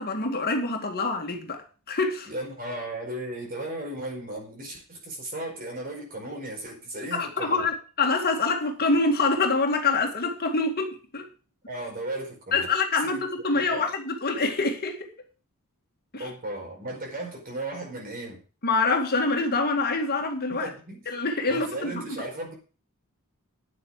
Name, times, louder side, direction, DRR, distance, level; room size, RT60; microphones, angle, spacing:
voice 1, 0.0-2.3 7.1-11.3 12.5-15.1 16.1-16.3 18.6-20.7 21.1-22.0, left 3 dB, 45° left, 2.2 m, -26 dB
voice 2, 2.2-7.7 11.7-12.7 13.0-13.2 13.5-13.9 16.2-18.4 20.5-21.1 21.5-22.6, right 1 dB, 40° right, 4.9 m, -36 dB
9.9 x 8.2 x 6.5 m
head